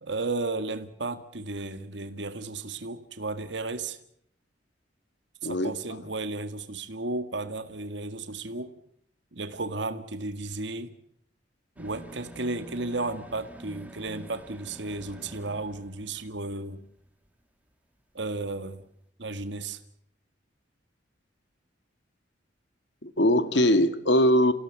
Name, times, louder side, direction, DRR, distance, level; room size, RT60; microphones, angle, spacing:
voice 1, 0.0-4.0 5.4-8.7 9.3-10.9 11.8-16.8 18.1-18.8 19.2-19.8, right 3 dB, 75° right, 1.8 m, -34 dB
voice 2, 5.4-5.7 23.0-24.5, equal, 70° left, 1.9 m, -21 dB
sound 1, 11.8-16.7 17.1-17.2, right 1 dB, 10° right, 2.1 m, -47 dB
28.5 x 17.0 x 8.3 m
head